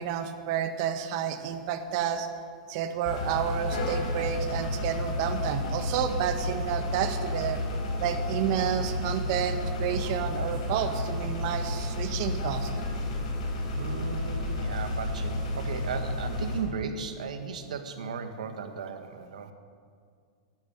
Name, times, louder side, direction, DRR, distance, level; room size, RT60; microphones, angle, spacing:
voice 1, 0.0-2.3 2.7-7.6 8.0-12.7, right 9 dB, 50° right, 8 dB, 1.4 m, -30 dB
sound 1, 3.1-16.6, left 2 dB, 70° left, 3.9 m, -31 dB
voice 2, 13.7-19.5, right 5 dB, 90° right, 7 dB, 1.6 m, -36 dB
13.0 x 11.0 x 7.8 m, 2.1 s
hypercardioid pair, 135°, 4 cm